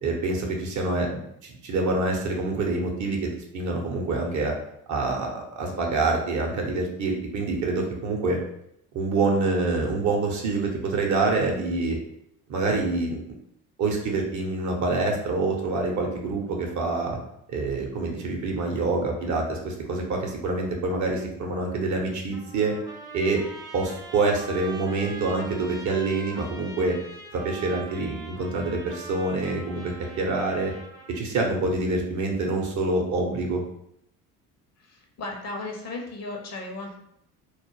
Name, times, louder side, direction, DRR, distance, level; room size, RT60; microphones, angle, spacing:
voice 1, 0.0-3.2 3.5-4.5 4.9-8.4 8.9-12.0 12.5-13.2 13.8-17.2 17.5-22.7 23.1-23.4 23.7-26.9 27.3-30.7 31.1-33.6, right 3 dB, 45° right, 1 dB, 0.7 m, -26 dB
Trumpet, 22.3-31.2, right 3 dB, 10° right, 0.5 m, -43 dB
voice 2, 34.8-37.0, left 2 dB, 40° left, 1 dB, 0.7 m, -35 dB
2.3 x 2.0 x 3.1 m, 0.74 s
hypercardioid pair, 55°, 43 cm